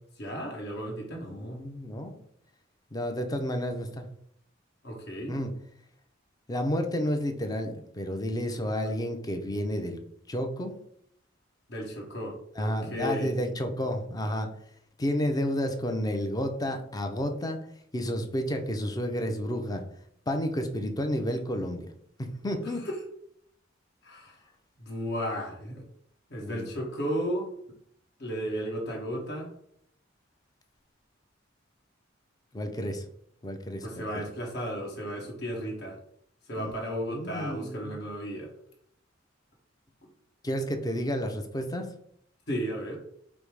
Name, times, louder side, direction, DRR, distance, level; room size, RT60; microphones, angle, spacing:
voice 1, 0.2-1.6 4.8-5.3 11.7-13.3 22.8-22.9 24.0-24.4 24.8-25.8 26.3-27.5 28.2-29.5 33.8-36.0 36.5-38.5 42.5-43.0, equal, 55° left, -1 dB, 1.2 m, -34 dB
voice 2, 1.1-2.2 2.9-4.1 5.3-5.5 6.5-10.0 10.3-10.7 12.6-14.5 15.0-17.6 17.9-19.8 20.3-21.9 22.2-22.8 26.4-26.7 32.5-33.0 33.4-34.2 36.6-36.7 37.0-38.0 40.4-41.9, equal, 20° left, 5 dB, 0.5 m, -31 dB
5.2 x 2.0 x 4.7 m, 0.68 s
head